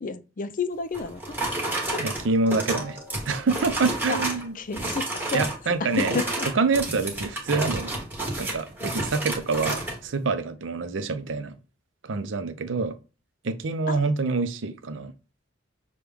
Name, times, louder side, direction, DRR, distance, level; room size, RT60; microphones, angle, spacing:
voice 1, 0.0-1.4 1.9-2.0 4.1-4.2 4.5-5.5 6.0-6.5 13.9-14.0, left 5 dB, 45° left, 0.4 m, -30 dB
sound 1, 0.9-4.4 4.7-5.6 5.9-10.0, right 2 dB, 10° right, 1.3 m, -30 dB
voice 2, 2.0-3.0 3.2-4.5 5.3-6.2 6.6-7.9 8.4-11.6 12.0-13.0 13.4-15.1, right 4 dB, 70° right, 0.5 m, -26 dB
6.0 x 2.2 x 3.4 m
head